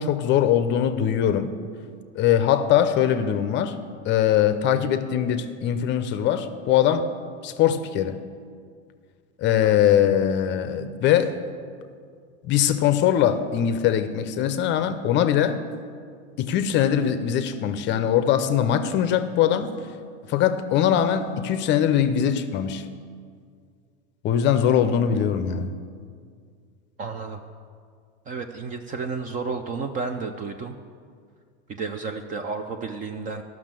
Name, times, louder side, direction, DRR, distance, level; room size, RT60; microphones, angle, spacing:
voice 1, 0.0-1.5 2.2-3.8 4.0-7.1 7.4-8.2 9.4-11.4 12.4-15.6 16.4-19.7 20.3-22.8 24.2-25.7, left 9 dB, 30° left, 11 dB, 0.5 m, -21 dB
voice 2, 27.0-27.4 28.3-30.8 31.8-33.4, right 4 dB, 25° right, 6 dB, 0.4 m, -31 dB
12.0 x 6.1 x 7.5 m, 2.1 s
supercardioid pair, 140°, 35 cm